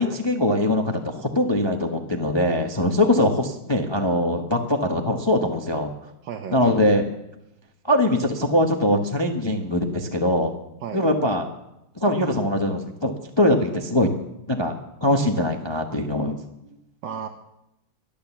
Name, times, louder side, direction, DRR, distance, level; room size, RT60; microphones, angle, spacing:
voice 1, 0.0-5.9 6.5-7.1 7.9-10.5 10.9-11.4 12.0-14.1 14.5-14.7 15.0-16.4, left 1 dB, 20° left, 3 dB, 0.8 m, -22 dB
voice 2, 6.2-6.8 10.8-11.1 16.6-17.3, right 7 dB, 70° right, 4 dB, 1.6 m, -35 dB
12.5 x 11.5 x 7.1 m, 0.87 s
omnidirectional pair, 2.1 m